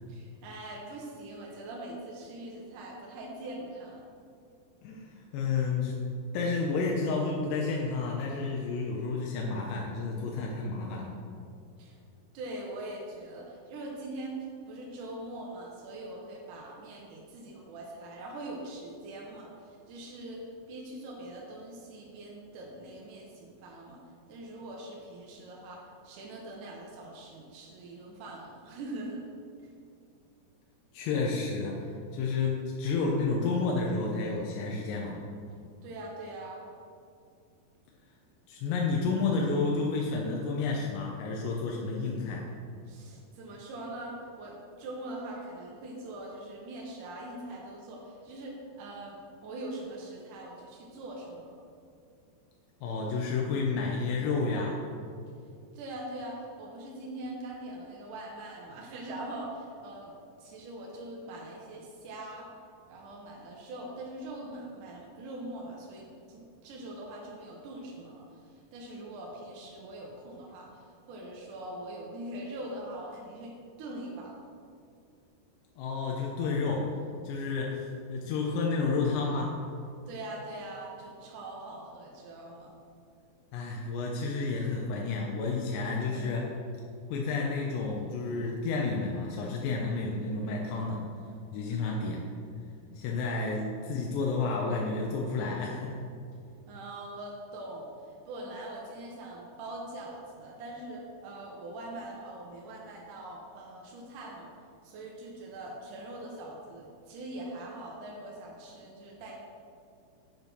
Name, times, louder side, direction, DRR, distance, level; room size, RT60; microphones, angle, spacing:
voice 1, 0.1-4.1 11.8-12.0 12.3-24.0 24.3-29.2 29.6-29.7 35.8-36.6 42.9-51.5 55.7-60.1 60.4-62.5 62.9-74.4 80.1-82.7 96.7-97.9 98.3-104.5 104.8-109.3, right 1 dB, 75° right, -2 dB, 1.9 m, -42 dB
voice 2, 4.8-6.0 6.3-11.1 30.9-35.2 38.5-42.4 52.8-54.8 75.8-76.9 77.2-79.6 83.5-86.5 87.1-91.0 91.5-92.2 93.0-96.0, left 4 dB, 80° left, -1 dB, 3.0 m, -30 dB
8.1 x 6.2 x 5.3 m, 2.4 s
omnidirectional pair, 5.0 m